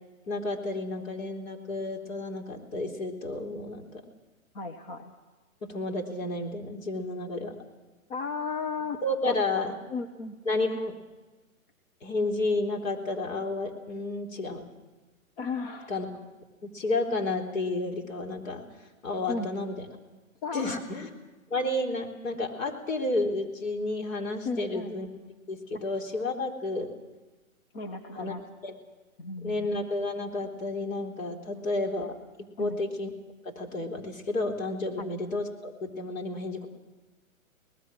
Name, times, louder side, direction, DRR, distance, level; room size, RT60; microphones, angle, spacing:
voice 1, 0.3-4.0 5.6-7.6 9.0-9.7 10.5-10.9 12.0-14.6 15.9-16.1 16.6-18.6 19.0-19.8 20.5-21.1 21.5-25.1 25.5-26.9 28.1-28.3 28.6-28.7 29.4-32.1 32.6-33.1 33.4-36.7, left 2 dB, 65° left, 2 dB, 4.0 m, -31 dB
voice 2, 4.5-5.1 8.1-9.0 9.2-9.3 9.9-10.4 15.4-15.9 19.3-19.5 20.4-20.8 24.4-24.9 25.7-25.8 27.7-28.4 29.2-29.7 31.5-31.6 32.6-32.8 35.0-35.1, left 4 dB, 40° left, 5 dB, 1.6 m, -34 dB
24.5 x 19.5 x 6.3 m, 1.2 s
hypercardioid pair, 140°, 42 cm